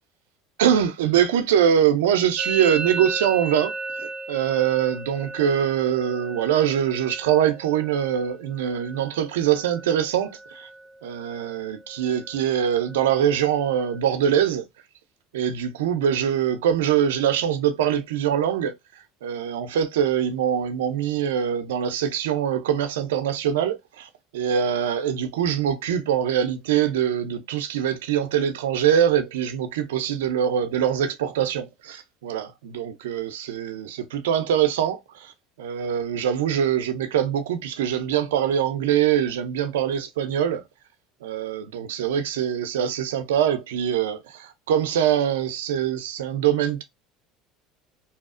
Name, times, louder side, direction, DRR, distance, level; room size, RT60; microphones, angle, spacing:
voice 1, 0.6-3.7 4.0-10.7 11.0-14.7 15.3-18.8 19.2-35.3 35.6-40.6 41.2-46.8, right 9 dB, 85° right, 0.4 m, -23 dB
Musical instrument, 2.4-10.0 10.3-10.8 11.1-11.7 12.0-14.0, right 3 dB, 15° right, 0.6 m, -36 dB
2.7 x 2.0 x 2.4 m
hypercardioid pair, 85°, 0 cm